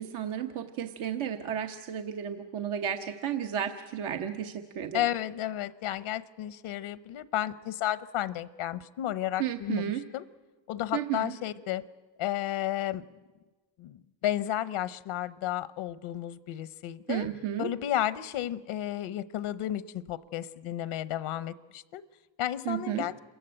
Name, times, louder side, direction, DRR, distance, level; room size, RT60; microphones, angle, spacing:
voice 1, 0.0-5.1 9.4-10.0 10.9-11.3 17.1-17.7 22.6-23.1, right 9 dB, 80° right, 5 dB, 1.1 m, -33 dB
voice 2, 4.9-10.2 10.7-11.8 12.2-13.0 13.8-17.3 17.6-22.0 22.4-23.1, left 12 dB, 85° left, 16 dB, 0.8 m, -32 dB
27.0 x 15.0 x 8.8 m, 1.3 s
cardioid pair, 80°, 48 cm